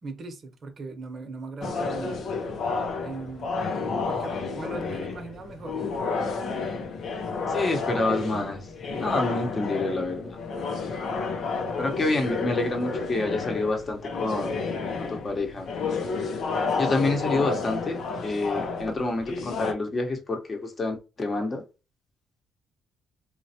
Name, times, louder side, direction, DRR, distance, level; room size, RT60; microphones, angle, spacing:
voice 1, 0.0-2.2 3.0-3.6 4.0-5.8 8.9-9.2 15.1-15.3, right 3 dB, 50° right, 0.8 m, -39 dB
sound 1, 1.6-19.7, left 4 dB, 65° left, 0.6 m, -31 dB
voice 2, 4.8-5.1 7.5-8.7 9.0-10.4 11.8-14.5 15.0-15.7 16.8-21.6, left 2 dB, 35° left, 0.9 m, -28 dB
3.1 x 2.3 x 2.7 m
cardioid pair, 75°, 0 cm